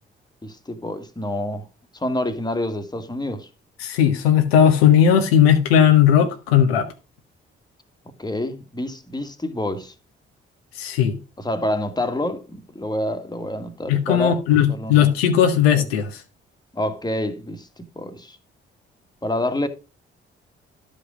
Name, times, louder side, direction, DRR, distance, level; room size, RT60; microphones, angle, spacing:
voice 1, 0.4-1.7 1.9-3.5 8.2-9.9 11.4-14.4 14.7-15.1 15.8-15.9 16.7-18.4 19.2-19.7, left 1 dB, 15° left, 1.7 m, -27 dB
voice 2, 3.8-6.9 10.8-11.2 13.9-16.1, left 9 dB, 75° left, 1.0 m, -17 dB
12.0 x 5.2 x 5.0 m
figure-of-eight pair, 40°, 31 cm